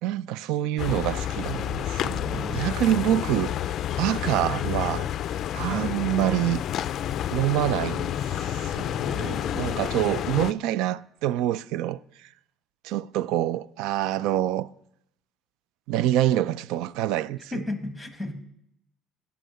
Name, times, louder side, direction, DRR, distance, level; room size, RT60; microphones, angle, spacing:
voice 1, 0.0-3.5 4.0-5.1 5.5-6.6 7.3-12.3 12.8-14.7 15.9-17.5, right 13 dB, 65° right, 0.4 m, -26 dB
sound 1, 0.8-10.5, left 10 dB, 40° left, 0.4 m, -29 dB
voice 2, 2.3-2.7 5.6-5.9 9.0-9.9 17.5-18.4, left 2 dB, ahead, 1.3 m, -35 dB
16.5 x 5.8 x 8.0 m
cardioid pair, 165°, 0 cm